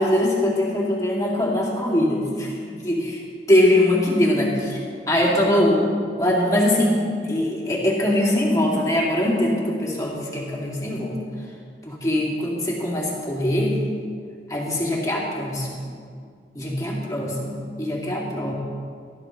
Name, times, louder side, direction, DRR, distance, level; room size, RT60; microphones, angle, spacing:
voice 1, 0.0-3.2 3.5-5.9 6.2-11.2 11.8-13.8 14.5-15.8 16.5-18.5, left 1 dB, 20° left, -4 dB, 2.7 m, -22 dB
18.0 x 13.5 x 3.3 m, 2.1 s
head